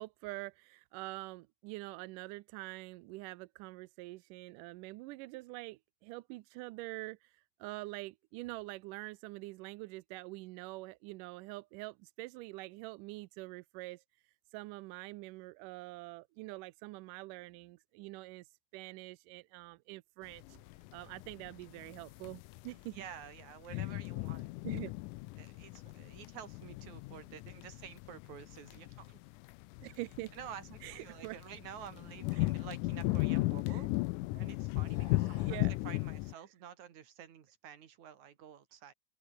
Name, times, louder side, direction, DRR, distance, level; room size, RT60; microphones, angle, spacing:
voice 1, 0.0-14.0 14.5-20.6 20.9-23.0 23.7-23.9 24.6-24.9 29.8-30.3 30.8-31.4 32.4-32.5 33.7-33.8 34.3-34.5 35.4-35.7, right 21 dB, 85° right, 2.2 m, -45 dB
sound 1, 20.4-36.3, left 21 dB, 85° left, 2.1 m, -36 dB
voice 2, 22.9-24.5 25.4-29.2 30.3-33.9 34.3-38.9, right 9 dB, 65° right, 3.4 m, -50 dB
sound 2, 34.8-35.8, left 2 dB, 35° left, 7.1 m, -57 dB
open air
omnidirectional pair, 3.7 m